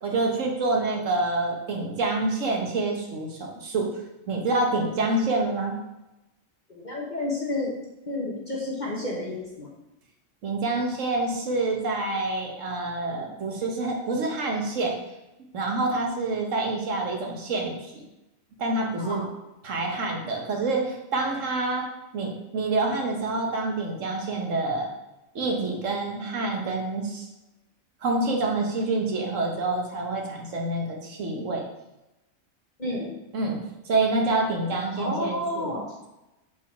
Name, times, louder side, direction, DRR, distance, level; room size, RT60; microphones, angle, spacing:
voice 1, 0.0-3.9 4.3-5.8 10.4-14.9 15.5-17.9 18.6-19.2 19.6-21.8 22.1-24.9 25.3-27.3 28.0-31.6 33.3-33.6 33.8-35.7, right 2 dB, 70° right, 1 dB, 1.4 m, -27 dB
voice 2, 6.7-7.7 8.1-9.7 19.0-19.3 32.8-33.1 35.0-35.9, left 1 dB, 35° left, -3 dB, 1.1 m, -30 dB
4.7 x 4.1 x 5.7 m, 0.96 s
omnidirectional pair, 1.4 m